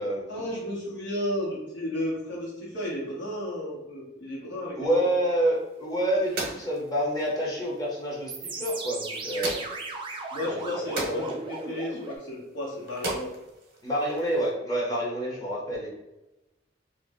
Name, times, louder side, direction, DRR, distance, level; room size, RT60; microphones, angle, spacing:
voice 1, 0.3-5.1 10.3-13.3, left 1 dB, 75° left, -5 dB, 1.1 m, -33 dB
voice 2, 4.7-9.7 10.4-11.4 13.8-15.9, right 1 dB, 20° left, -4 dB, 0.7 m, -28 dB
sound 1, 5.5-14.5, right 2 dB, 55° right, 0.8 m, -39 dB
sound 2, 8.3-12.2, right 3 dB, 25° right, 0.4 m, -37 dB
2.5 x 2.0 x 3.4 m, 1.0 s
head